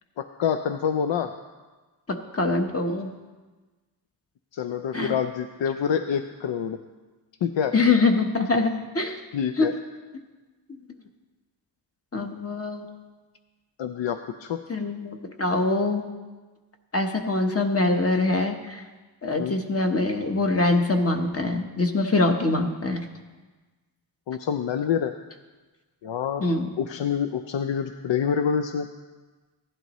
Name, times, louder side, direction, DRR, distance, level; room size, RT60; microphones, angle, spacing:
voice 1, 0.2-1.4 4.5-6.8 7.4-7.7 9.3-9.7 13.8-14.6 19.4-19.6 24.3-25.2 26.0-26.4 26.8-28.9, left 7 dB, 80° left, 8 dB, 0.6 m, -27 dB
voice 2, 2.1-3.1 4.9-5.1 7.7-9.2 9.6-9.7 10.7-10.8 12.1-12.9 14.7-16.1 16.9-18.8 19.2-23.1 26.4-26.7, left 3 dB, 30° left, 4 dB, 1.1 m, -24 dB
16.0 x 11.0 x 3.1 m, 1.3 s
wide cardioid pair, 110°, 44 cm